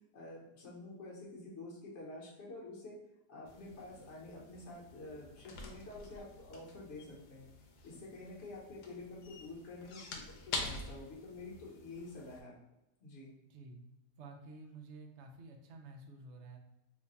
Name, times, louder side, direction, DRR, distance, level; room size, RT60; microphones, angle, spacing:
voice 1, 0.1-3.0 3.3-7.5 7.8-10.0 10.5-12.5 13.0-13.3, left 2 dB, 50° left, -4 dB, 1.2 m, -48 dB
sound 1, 3.5-12.4, left 3 dB, 90° left, 1.2 m, -47 dB
voice 2, 13.5-13.9 14.2-16.6, right 3 dB, 70° right, 3 dB, 0.6 m, -51 dB
3.0 x 2.2 x 3.9 m, 0.91 s
omnidirectional pair, 1.7 m